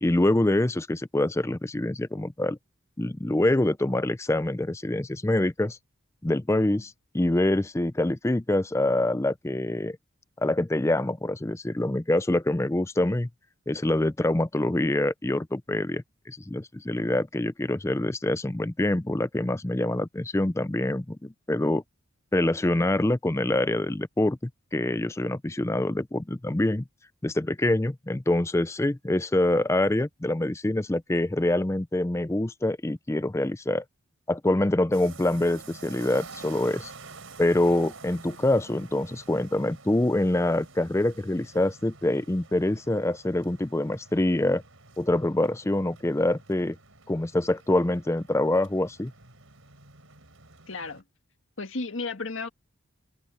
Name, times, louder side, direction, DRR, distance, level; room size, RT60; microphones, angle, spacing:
voice 1, 0.0-2.6 3.0-5.8 6.2-10.0 10.4-13.3 13.7-21.8 22.3-26.8 27.2-33.8 34.3-36.9 37.4-44.6 45.0-46.8 47.1-49.1, left 1 dB, 15° left, 0.4 m, -25 dB
sound 1, 34.9-51.0, right 4 dB, 70° right, 5.0 m, -49 dB
voice 2, 50.7-51.0 51.6-52.5, left 3 dB, 65° left, 1.9 m, -33 dB
open air
head